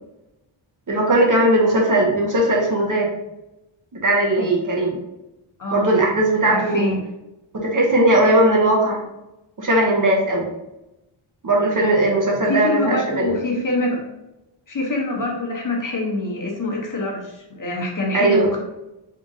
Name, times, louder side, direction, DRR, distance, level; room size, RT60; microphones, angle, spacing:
voice 1, 0.9-3.1 3.9-5.0 5.7-6.9 7.5-9.0 9.6-10.5 11.4-13.3 18.1-18.5, right 1 dB, 40° right, -2 dB, 0.8 m, -18 dB
voice 2, 5.6-5.9 6.5-7.0 12.4-14.0 14.7-18.6, left 2 dB, 40° left, -1 dB, 0.8 m, -25 dB
3.7 x 2.6 x 3.7 m, 0.94 s
wide cardioid pair, 165°, 48 cm